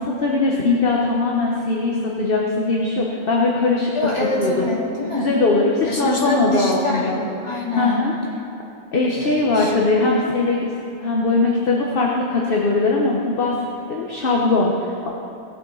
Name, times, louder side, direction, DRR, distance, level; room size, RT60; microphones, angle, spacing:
voice 1, 0.0-3.9 4.4-4.7 5.2-7.2 7.8-8.1 8.9-10.7 11.0-13.5 13.9-15.1, left 3 dB, 45° left, -2 dB, 1.2 m, -20 dB
voice 2, 3.9-5.4 5.9-8.1 9.2-9.7, left 2 dB, 20° left, -5 dB, 2.4 m, -25 dB
19.5 x 8.3 x 3.9 m, 2.7 s
omnidirectional pair, 1.4 m